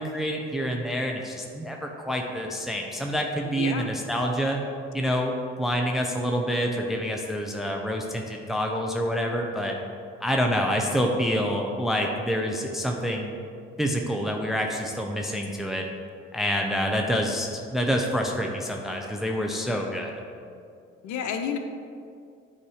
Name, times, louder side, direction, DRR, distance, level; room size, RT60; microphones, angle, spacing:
voice 1, 0.0-4.6 4.9-9.7 10.2-13.4 13.8-15.8 16.3-20.1, equal, ahead, 1 dB, 0.7 m, -27 dB
voice 2, 3.4-3.9 21.0-21.6, left 7 dB, 70° left, 5 dB, 0.7 m, -30 dB
8.2 x 2.9 x 4.9 m, 2.3 s
supercardioid pair, 55°, 30 cm